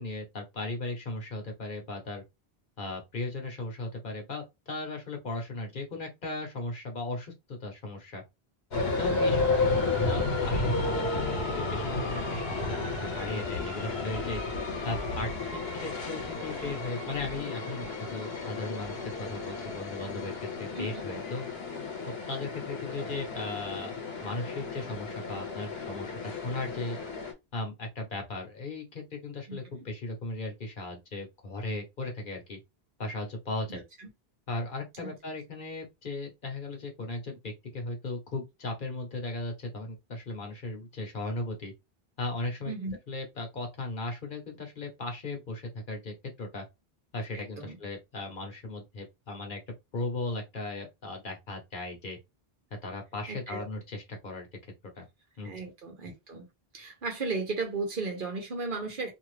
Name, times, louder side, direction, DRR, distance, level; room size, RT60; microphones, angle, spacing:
voice 1, 0.0-2.2 2.8-8.2 9.0-14.4 14.8-21.4 22.3-27.0 27.5-32.6 33.0-33.8 34.5-41.7 42.2-42.7 43.1-46.6 47.1-49.6 49.9-52.2 52.8-54.5 54.9-55.1 55.4-55.6, left 2 dB, 55° left, 1.0 m, -37 dB
sound 1, 8.7-27.3, left 3 dB, 75° left, 1.2 m, -32 dB
voice 2, 8.8-9.2 20.7-21.0 29.5-29.6 33.7-34.1 35.0-35.1 42.7-43.0 47.3-47.8 53.3-53.6 55.4-56.5 56.7-59.1, right 3 dB, 55° right, 1.0 m, -35 dB
2.7 x 2.3 x 3.2 m
omnidirectional pair, 1.1 m